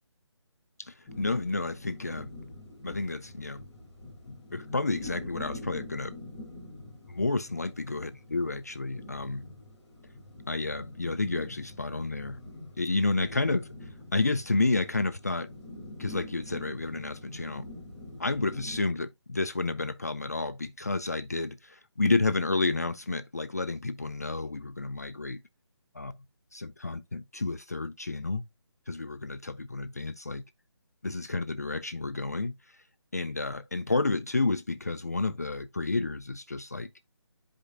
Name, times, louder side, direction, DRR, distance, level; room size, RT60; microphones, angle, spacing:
voice 1, 0.8-2.3 2.8-3.6 4.3-6.1 7.1-9.4 10.5-12.4 12.8-13.7 14.1-15.5 16.0-17.6 18.2-25.4 25.9-26.1 26.5-28.4 28.9-30.4 31.0-32.5 33.1-36.9, left 3 dB, 35° left, 0.4 m, -30 dB
sound 1, 1.1-18.8, left 2 dB, 5° left, 0.7 m, -45 dB
10.0 x 5.0 x 2.4 m
figure-of-eight pair, 175°, 15 cm